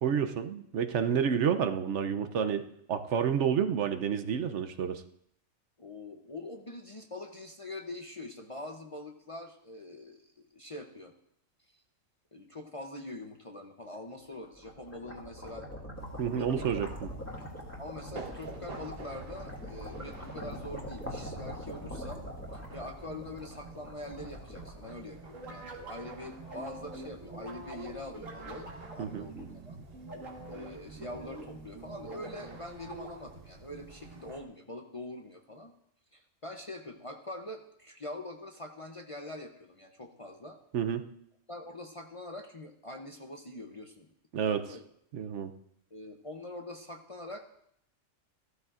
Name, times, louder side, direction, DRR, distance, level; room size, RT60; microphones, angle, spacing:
voice 1, 0.0-5.0 16.2-17.1 29.0-29.3 40.7-41.0 44.3-44.7 45.1-45.5, right 7 dB, 70° right, 8 dB, 1.0 m, -29 dB
voice 2, 5.8-11.1 11.7-11.8 12.3-15.7 16.3-16.6 17.8-22.2 22.7-29.8 30.4-35.7 36.1-40.6 41.5-44.1 44.4-44.9 45.9-47.4, left 1 dB, 30° left, 4 dB, 0.7 m, -44 dB
sound 1, 14.3-25.5, equal, 10° left, 1.9 m, -43 dB
sound 2, 15.9-34.4, right 3 dB, 50° right, 1.4 m, -50 dB
sound 3, 25.3-33.4, right 2 dB, 85° right, 1.9 m, -46 dB
15.0 x 12.5 x 2.5 m, 0.71 s
omnidirectional pair, 1.3 m